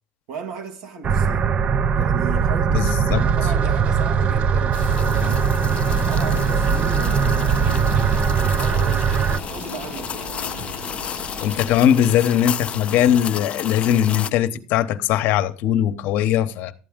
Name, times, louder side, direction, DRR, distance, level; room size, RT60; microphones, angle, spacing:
voice 1, 0.3-1.5 1.9-5.4 6.1-9.1 9.5-10.3, right 6 dB, 80° right, 1.6 m, -36 dB
sound 1, 1.0-9.4, right 6 dB, 40° right, 0.5 m, -20 dB
voice 2, 2.7-3.2 11.4-16.7, left 10 dB, 70° left, 0.9 m, -20 dB
sound 2, 3.1-11.8, right 1 dB, 60° right, 3.0 m, -35 dB
sound 3, 4.7-14.3, left 8 dB, 40° left, 0.5 m, -32 dB
12.5 x 8.5 x 3.6 m
supercardioid pair, 95°, 3 cm